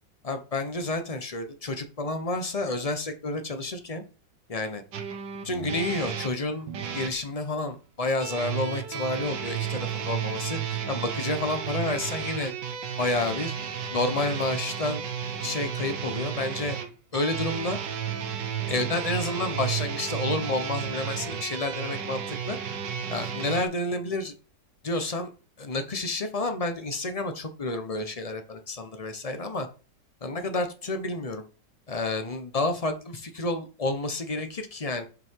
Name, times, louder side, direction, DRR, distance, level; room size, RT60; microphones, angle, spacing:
voice 1, 0.2-4.0 4.5-4.8 5.4-6.7 6.9-12.5 13.0-13.5 13.9-15.0 15.4-16.8 17.1-17.8 18.7-22.6 23.1-24.3 24.8-25.3 25.6-29.7 30.2-31.4 31.9-35.1, left 2 dB, 30° left, 7 dB, 0.7 m, -30 dB
sound 1, 4.9-7.2 8.2-23.6, right 8 dB, 70° right, 1.6 m, -33 dB
5.9 x 5.6 x 4.7 m, 0.34 s
omnidirectional pair, 2.0 m